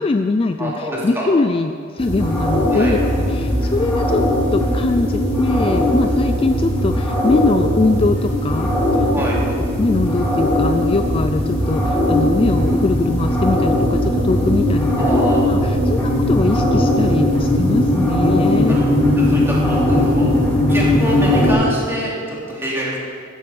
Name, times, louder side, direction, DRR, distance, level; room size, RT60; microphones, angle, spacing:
voice 1, 0.0-3.0 3.3-4.2 4.5-9.1 9.8-14.9 15.5-18.8, left 3 dB, 25° left, 7 dB, 0.3 m, -21 dB
voice 2, 0.6-1.3 2.7-2.9 9.1-9.4 15.0-15.4 18.7-18.9 19.3-20.3 20.7-23.0, right 1 dB, 10° right, -6 dB, 3.4 m, -25 dB
sound 1, 2.0-21.5, left 1 dB, 10° left, 3.8 m, -18 dB
15.0 x 7.6 x 6.9 m, 2.1 s
head